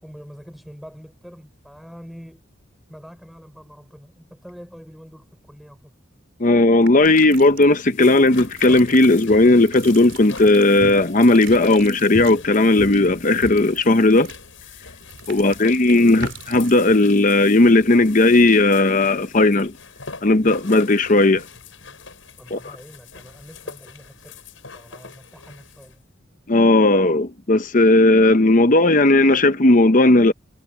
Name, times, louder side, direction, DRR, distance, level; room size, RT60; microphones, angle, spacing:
voice 1, 0.0-2.5 2.9-5.9 15.3-15.7 22.4-24.4 24.7-26.0, equal, ahead, 4.7 m, -44 dB
voice 2, 6.4-14.3 15.3-19.7 20.2-21.4 22.5-22.6 26.5-30.3, left 2 dB, 40° left, 0.9 m, -15 dB
sound 1, 6.8-18.2, right 9 dB, 70° right, 4.0 m, -44 dB
sound 2, 7.5-25.9, left 3 dB, 85° left, 6.4 m, -39 dB
head